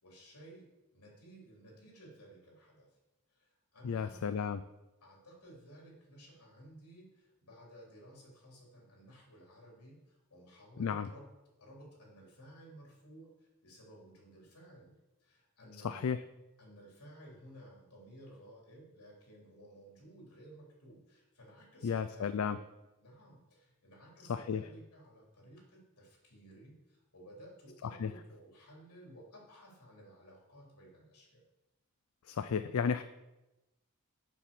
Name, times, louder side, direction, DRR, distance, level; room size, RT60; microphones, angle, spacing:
voice 1, 0.0-2.9 3.3-4.3 5.0-11.3 11.6-14.9 15.2-16.2 16.6-22.6 23.0-31.4, right 1 dB, 85° left, -2 dB, 3.5 m, -56 dB
voice 2, 3.8-4.6 10.8-11.1 15.8-16.2 21.8-22.6 24.3-24.6 28.0-28.1 32.3-33.0, left 6 dB, 70° left, 11 dB, 0.4 m, -33 dB
7.2 x 5.9 x 6.9 m, 0.98 s
head